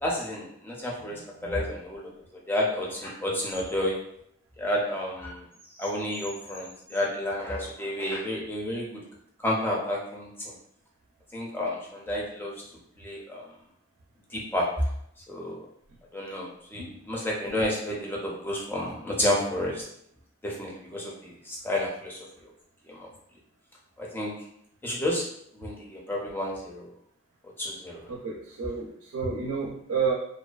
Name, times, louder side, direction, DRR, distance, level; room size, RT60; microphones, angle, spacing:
voice 1, 0.0-2.1 2.5-4.0 4.6-5.4 5.8-8.9 9.4-10.5 11.3-12.5 13.0-13.5 14.3-14.9 15.3-15.6 16.1-19.8 20.4-22.2 22.9-23.1 24.0-24.3 24.8-25.2 25.5-26.9 27.6-28.0, left 1 dB, 10° left, -4 dB, 0.5 m, -30 dB
voice 2, 28.1-30.1, right 5 dB, 85° right, -2 dB, 0.4 m, -30 dB
2.4 x 2.2 x 2.3 m, 0.70 s
head